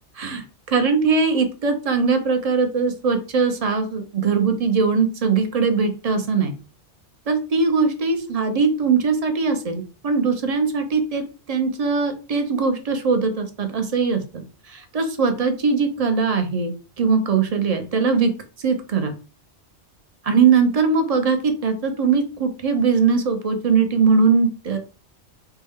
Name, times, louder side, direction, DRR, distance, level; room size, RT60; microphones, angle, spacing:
voice 1, 0.7-6.5 7.3-11.2 11.5-16.7 17.0-18.3 18.6-19.1 20.2-24.8, right 5 dB, 45° right, 6 dB, 0.5 m, -20 dB
4.3 x 2.1 x 3.5 m, 0.34 s
omnidirectional pair, 1.2 m